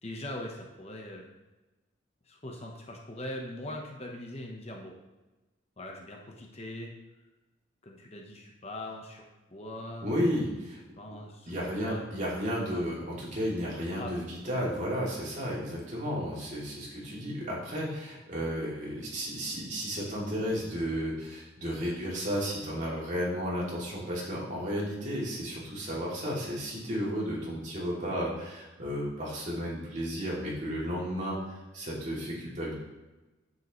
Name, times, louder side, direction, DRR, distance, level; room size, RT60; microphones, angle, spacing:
voice 1, 0.0-1.3 2.2-4.9 5.8-6.9 7.8-9.2 9.5-10.1 10.9-12.8 13.7-14.2, left 1 dB, 30° left, 0 dB, 1.0 m, -41 dB
voice 2, 10.0-10.8 11.5-31.4 31.7-32.7, equal, 40° right, -5 dB, 2.6 m, -33 dB
9.5 x 7.7 x 3.1 m, 1.1 s
head